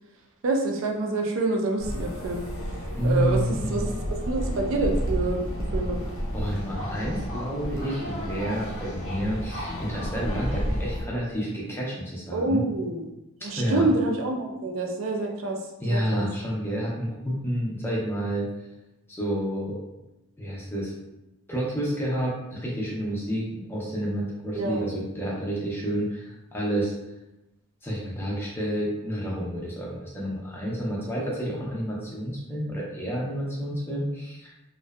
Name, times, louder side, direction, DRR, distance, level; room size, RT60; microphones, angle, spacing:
voice 1, 0.4-2.5 3.0-3.4 3.7-5.4 5.7-6.0 12.3-13.1 13.4-15.6 15.9-16.3 24.5-24.9, right 2 dB, 60° right, 2 dB, 0.3 m, -27 dB
sound 1, 1.8-11.0, equal, 60° left, 0.6 m, -31 dB
voice 2, 3.0-3.9 6.3-12.6 13.6-13.9 15.8-18.5 19.1-19.8 20.4-20.9 21.5-26.9 27.8-34.5, equal, 10° left, -4 dB, 0.4 m, -29 dB
2.6 x 2.2 x 2.2 m, 0.95 s
head